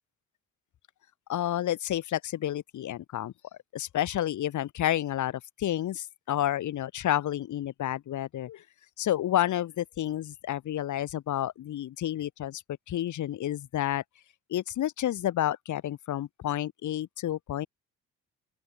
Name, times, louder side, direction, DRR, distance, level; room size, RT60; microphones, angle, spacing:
voice 1, 1.3-3.3 3.7-8.6 9.0-12.6 12.9-14.0 14.5-17.7, left 12 dB, 75° left, 5.5 m, -30 dB
open air
cardioid pair, 90°, 30 cm